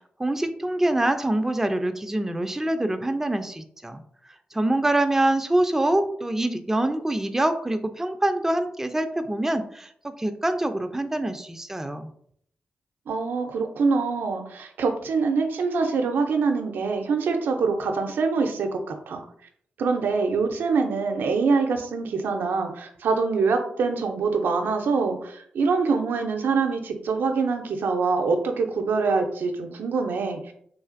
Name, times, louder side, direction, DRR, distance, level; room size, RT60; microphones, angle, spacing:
voice 1, 0.2-4.0 4.5-12.1, right 1 dB, 10° right, 8 dB, 0.3 m, -25 dB
voice 2, 13.1-18.8 19.1-19.2 19.8-30.5, right 4 dB, 80° right, 4 dB, 0.4 m, -24 dB
3.2 x 2.4 x 2.5 m, 0.64 s
cardioid pair, 50°, 3 cm